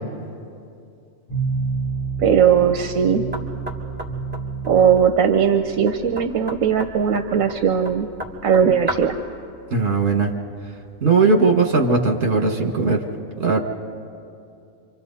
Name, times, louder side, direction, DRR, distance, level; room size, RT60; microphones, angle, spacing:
sound 1, 1.3-12.4, right 5 dB, 40° left, 4.7 m, -32 dB
voice 1, 2.2-3.2 4.6-8.1 8.4-9.2, right 7 dB, 80° right, 6 dB, 1.2 m, -18 dB
Knock, 3.3-9.2, equal, 10° right, 1.7 m, -35 dB
voice 2, 9.7-10.3 11.0-13.0 13.4-13.6, right 4 dB, 55° right, 2 dB, 2.1 m, -18 dB
27.5 x 25.0 x 4.1 m, 2.5 s
omnidirectional pair, 1.4 m